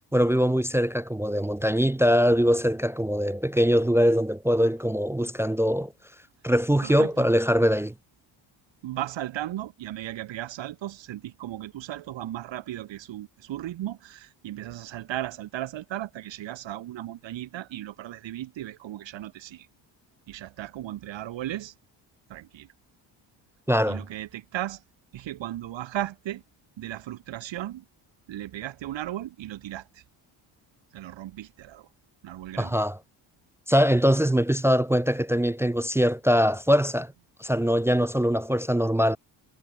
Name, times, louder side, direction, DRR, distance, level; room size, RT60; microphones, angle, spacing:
voice 1, 0.1-5.9 6.4-7.9 23.7-24.0 32.6-33.0 33.7-37.1 37.4-39.2, equal, 5° right, 0.4 m, -22 dB
voice 2, 6.8-7.3 8.8-19.7 20.3-21.7 22.3-22.7 23.9-24.8 25.1-26.4 26.8-27.8 28.3-30.0 30.9-31.9 32.2-32.8, right 13 dB, 75° right, 3.2 m, -36 dB
cardioid pair, 95°, 45 cm